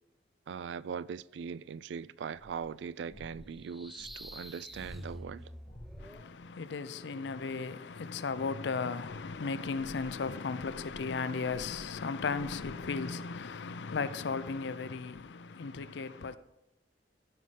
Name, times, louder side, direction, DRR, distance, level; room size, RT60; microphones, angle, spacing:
voice 1, 0.5-5.5, right 6 dB, 85° right, 0.3 m, -40 dB
sound 1, 2.3-6.5 9.0-13.2, left 1 dB, 55° left, 1.3 m, -54 dB
sound 2, 3.5-6.3, equal, ahead, 0.3 m, -47 dB
voice 2, 6.0-16.4, left 4 dB, 85° left, 0.5 m, -36 dB
15.5 x 5.5 x 3.3 m
head